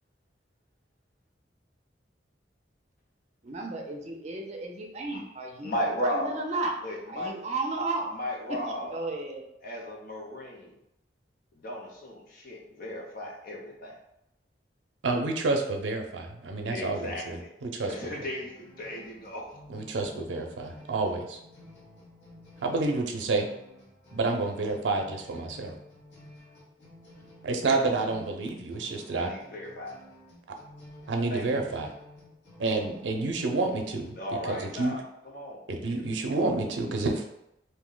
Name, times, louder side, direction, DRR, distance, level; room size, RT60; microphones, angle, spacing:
voice 1, 3.4-6.8 7.1-8.1 8.9-9.5, right 3 dB, 40° right, 2 dB, 0.5 m, -33 dB
voice 2, 5.6-6.4 6.8-7.3 8.1-9.0 9.6-10.8 11.5-14.0 16.7-17.5 17.9-19.5 29.1-30.0 31.3-31.5 34.2-35.6 35.9-36.0, left 1 dB, 55° left, -1 dB, 0.6 m, -35 dB
voice 3, 15.0-17.9 19.7-21.4 22.6-23.5 24.1-25.7 27.4-29.3 31.1-31.9 32.6-34.2 34.5-35.0 35.7-37.2, right 3 dB, 85° right, 3 dB, 0.5 m, -29 dB
sound 1, 18.0-34.1, left 1 dB, 80° left, 1.1 m, -52 dB
2.6 x 2.1 x 3.7 m, 0.83 s
head